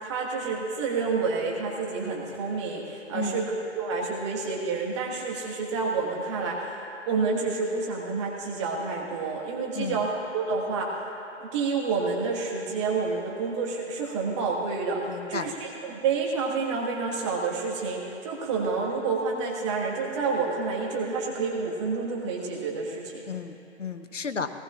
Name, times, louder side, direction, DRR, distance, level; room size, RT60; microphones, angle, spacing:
voice 1, 0.0-6.8 7.1-11.0 11.4-23.2, right 4 dB, 25° right, -2 dB, 1.7 m, -29 dB
voice 2, 3.1-3.5 9.7-10.0 15.1-15.5 23.3-24.5, left 4 dB, 80° left, 8 dB, 1.0 m, -33 dB
20.0 x 18.5 x 2.5 m, 2.8 s
figure-of-eight pair, 145°, 36 cm